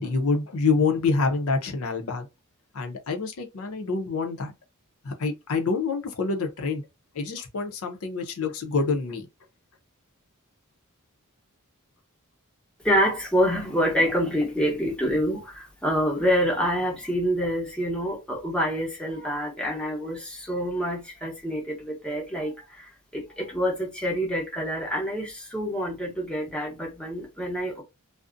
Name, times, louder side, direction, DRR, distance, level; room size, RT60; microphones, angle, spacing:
voice 1, 0.0-2.3 2.7-4.5 5.0-6.8 7.1-9.3, left 4 dB, 70° left, 0.5 m, -26 dB
voice 2, 12.8-27.8, equal, 5° left, 0.7 m, -27 dB
2.5 x 2.0 x 2.4 m
head